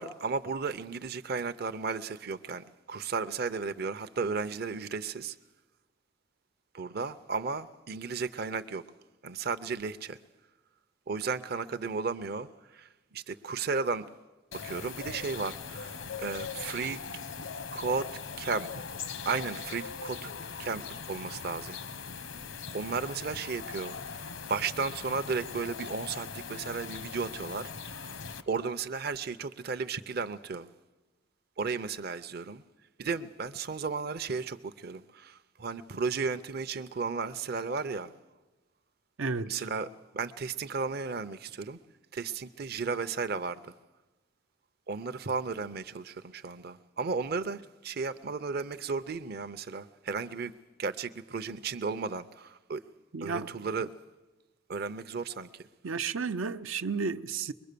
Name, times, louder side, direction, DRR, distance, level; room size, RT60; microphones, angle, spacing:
voice 1, 0.0-5.4 6.7-8.8 9.2-10.2 11.1-14.1 14.5-17.0 17.7-18.1 18.4-18.9 19.2-20.3 20.6-21.8 22.7-27.7 28.0-28.1 28.5-30.7 31.6-32.6 33.0-38.1 39.5-39.9 40.1-41.8 42.1-43.7 44.9-50.5 50.8-52.8 53.2-53.9 54.7-55.6, right 4 dB, 50° right, 0.6 m, -34 dB
sound 1, 14.5-28.4, left 5 dB, 80° left, 1.1 m, -40 dB
voice 2, 39.2-39.5 53.1-53.5 55.8-57.5, right 5 dB, 90° right, 0.7 m, -32 dB
23.0 x 22.0 x 6.8 m
head